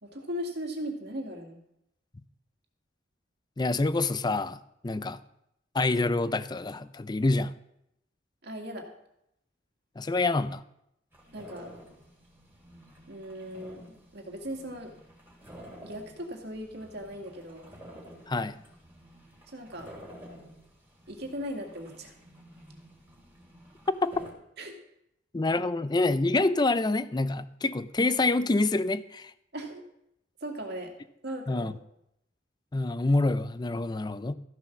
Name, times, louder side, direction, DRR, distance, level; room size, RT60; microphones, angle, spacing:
voice 1, 0.0-1.6 8.4-8.9 11.3-11.7 13.1-14.9 15.8-17.7 19.5-19.9 21.1-22.1 24.6-24.7 29.5-29.8 30.4-30.9 31.2-31.8, equal, 55° right, 2.1 m, -38 dB
voice 2, 3.6-5.2 5.7-7.5 10.0-10.6 18.3-18.6 23.9-24.3 25.3-29.3 31.5-31.7 32.7-34.3, left 2 dB, 20° left, 0.5 m, -27 dB
sound 1, 11.1-24.3, equal, 10° right, 2.8 m, -51 dB
14.0 x 7.0 x 5.9 m
head